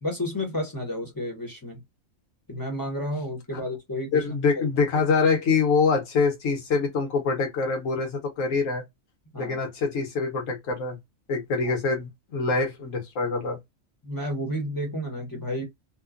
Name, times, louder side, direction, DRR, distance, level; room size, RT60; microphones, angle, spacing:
voice 1, 0.0-1.8 2.5-4.2 4.5-4.6 9.3-9.6 14.0-15.6, left 1 dB, 20° left, 0.8 m, -31 dB
voice 2, 4.1-8.8 9.4-11.0 11.3-13.6, left 4 dB, 70° left, 1.4 m, -25 dB
3.0 x 2.2 x 2.3 m
omnidirectional pair, 1.4 m